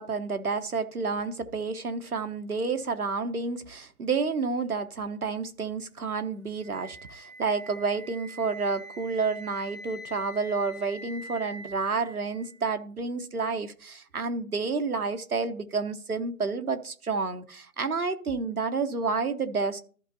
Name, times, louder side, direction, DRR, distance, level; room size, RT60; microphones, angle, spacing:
voice 1, 0.0-19.8, right 4 dB, 80° right, 1.1 m, -30 dB
Wind instrument woodwind instrument, 6.6-12.5, right 1 dB, 55° right, 4.5 m, -45 dB
14.0 x 5.5 x 2.7 m
figure-of-eight pair, 180°, 44 cm